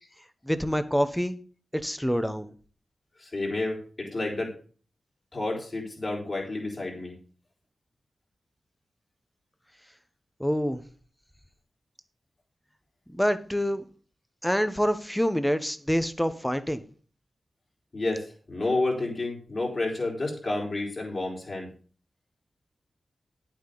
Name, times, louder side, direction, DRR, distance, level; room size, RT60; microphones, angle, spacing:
voice 1, 0.5-1.4 1.8-2.5 10.4-10.8 13.1-13.8 14.4-16.8, equal, 5° left, 11 dB, 0.8 m, -26 dB
voice 2, 3.2-4.5 5.3-7.2 17.9-21.7, left 2 dB, 40° left, -1 dB, 3.9 m, -30 dB
11.0 x 8.7 x 3.9 m, 0.40 s
wide cardioid pair, 150°, 0 cm